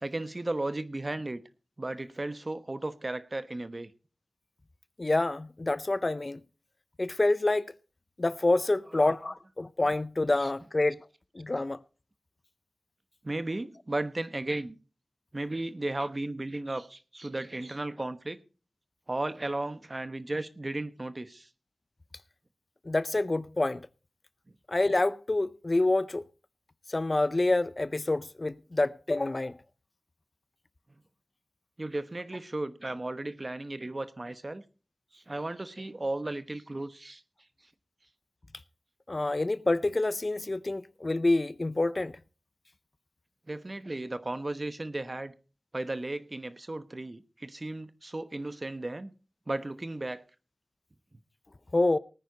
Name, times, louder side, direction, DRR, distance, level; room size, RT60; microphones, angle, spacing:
voice 1, 0.0-1.4 1.8-3.9 10.3-10.5 13.2-14.8 15.3-18.4 19.1-21.5 31.8-34.6 35.1-37.2 43.5-45.3 45.7-49.1 49.5-50.2, right 2 dB, 40° right, 1.0 m, -35 dB
voice 2, 5.0-6.4 7.0-7.6 8.2-11.0 11.4-11.8 22.9-23.8 24.7-26.2 26.9-29.5 39.1-42.1 51.7-52.0, left 2 dB, 45° left, 0.5 m, -27 dB
18.5 x 9.3 x 4.0 m
wide cardioid pair, 50°, 0 cm